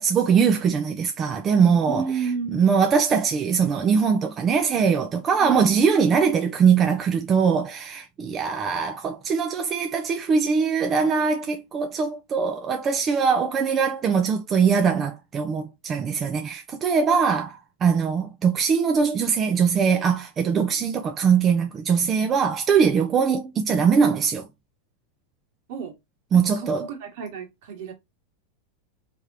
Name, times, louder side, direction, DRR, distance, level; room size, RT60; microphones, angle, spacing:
voice 1, 0.0-2.0 2.5-24.4 26.3-26.9, right 6 dB, 30° right, 0.6 m, -21 dB
voice 2, 1.9-2.9 5.4-5.5 20.7-21.0 25.7-25.9 26.3-27.9, right 5 dB, 65° right, 1.9 m, -32 dB
3.5 x 3.5 x 2.7 m
supercardioid pair, 130°, 0 cm